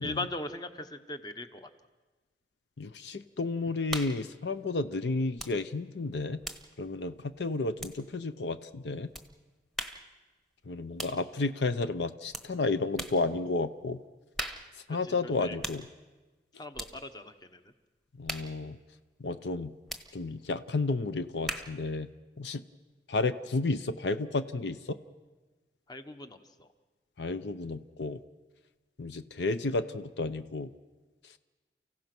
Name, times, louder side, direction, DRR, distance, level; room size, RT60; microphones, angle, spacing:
voice 1, 0.0-1.7 14.9-15.6 16.6-17.6 25.9-26.7, left 2 dB, 25° left, 9 dB, 1.0 m, -39 dB
voice 2, 2.8-6.4 6.8-9.1 10.7-14.0 14.9-15.8 18.2-18.8 19.2-19.7 20.1-22.1 22.4-22.6 23.1-25.0 27.2-28.2 29.0-30.7, left 3 dB, 80° left, 11 dB, 0.7 m, -32 dB
sound 1, 3.9-4.3 5.3-5.6 5.9-8.3 9.1-9.3 9.7-10.1 11.0-11.3 12.3-12.5 13.0-13.2 14.3-14.8 15.6-15.9 16.7-17.0 18.2-18.6 19.9-20.1 21.4-21.8, right 1 dB, ahead, 1.1 m, -39 dB
29.5 x 16.0 x 6.0 m, 1.2 s
head